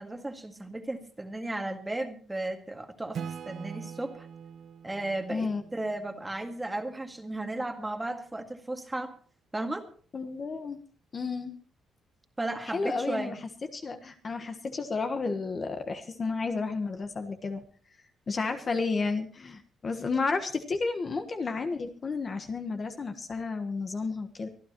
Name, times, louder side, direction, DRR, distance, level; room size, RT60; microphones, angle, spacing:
voice 1, 0.0-4.3 4.8-9.2 9.5-9.9 12.4-13.3, right 2 dB, 10° right, 5 dB, 1.9 m, -35 dB
Acoustic guitar / Strum, 3.1-6.7, right 7 dB, 55° right, 1.1 m, -42 dB
voice 2, 5.3-5.6 10.1-10.8 11.1-11.5 12.7-13.3 13.7-17.6 18.3-24.5, left 4 dB, 30° left, 6 dB, 1.3 m, -32 dB
24.5 x 12.5 x 3.0 m, 0.43 s
cardioid pair, 150°, 0 cm